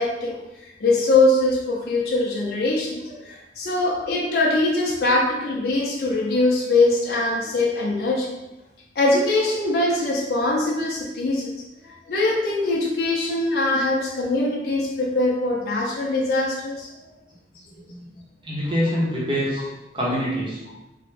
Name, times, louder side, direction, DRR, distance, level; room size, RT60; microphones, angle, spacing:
voice 1, 0.0-8.3 9.0-11.5 12.1-16.9 18.6-18.7, left 2 dB, 55° left, -3 dB, 0.5 m, -22 dB
voice 2, 18.4-19.7 19.9-20.6, equal, 25° right, -5 dB, 0.7 m, -25 dB
3.4 x 2.0 x 3.2 m, 0.97 s
head